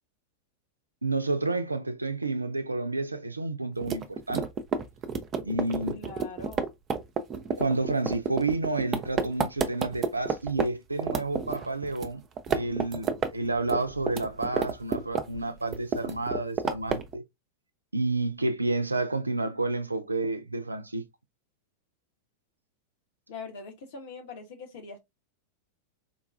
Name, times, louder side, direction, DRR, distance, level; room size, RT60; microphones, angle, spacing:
voice 1, 1.0-4.5 5.4-6.0 7.6-12.2 12.5-17.2 17.9-21.1, right 2 dB, 80° right, 0.4 m, -30 dB
sound 1, 3.8-10.7 11.0-12.1 12.4-13.3 13.6-15.4 15.7-17.1, right 6 dB, 25° right, 0.5 m, -29 dB
voice 2, 5.9-6.7 23.3-25.0, left 4 dB, 55° left, 1.1 m, -42 dB
3.9 x 2.3 x 2.5 m
figure-of-eight pair, 90°, 0 cm